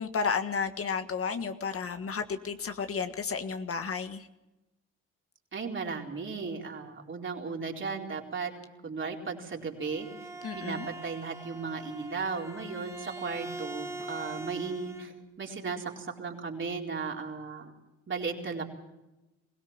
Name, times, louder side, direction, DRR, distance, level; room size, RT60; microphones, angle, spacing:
voice 1, 0.0-4.3 10.4-10.9, left 5 dB, 50° left, 8 dB, 1.6 m, -32 dB
voice 2, 5.5-8.5 8.8-10.1 10.6-15.1 15.4-17.7 18.1-18.6, right 4 dB, 40° right, 0 dB, 4.4 m, -35 dB
Bowed string instrument, 9.6-15.1, right 2 dB, 10° right, 2.0 m, -42 dB
22.5 x 17.0 x 7.4 m, 0.98 s
cardioid pair, 90°, 30 cm